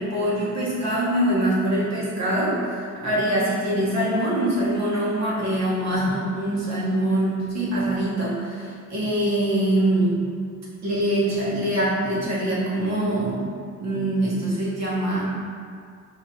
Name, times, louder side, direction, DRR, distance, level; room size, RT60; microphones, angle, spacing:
voice 1, 0.0-10.2 10.8-13.4 13.8-15.2, right 1 dB, 60° right, -7 dB, 1.2 m, -24 dB
4.8 x 3.2 x 2.7 m, 2.1 s
cardioid pair, 130°, 31 cm